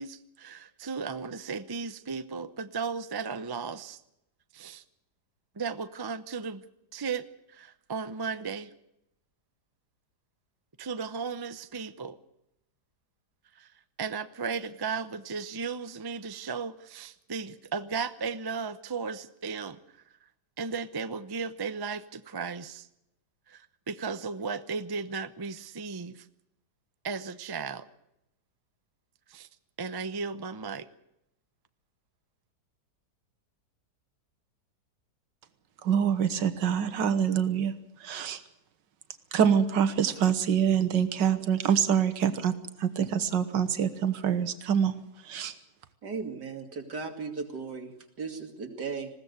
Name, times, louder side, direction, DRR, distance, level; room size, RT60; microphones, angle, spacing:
voice 1, 0.0-4.0 4.5-4.8 5.6-6.6 6.9-8.7 10.8-12.2 13.5-13.7 14.0-19.8 20.6-22.9 23.5-26.3 27.0-27.9 29.3-29.5 29.8-30.9, right 5 dB, 25° right, 12 dB, 0.5 m, -35 dB
voice 2, 35.8-37.7 38.0-38.4 39.3-44.9 45.2-45.5, right 8 dB, 90° right, 11 dB, 1.8 m, -25 dB
voice 3, 46.0-47.9 48.2-49.1, right 4 dB, 70° right, 4 dB, 3.1 m, -36 dB
20.5 x 16.5 x 8.1 m, 0.83 s
omnidirectional pair, 1.9 m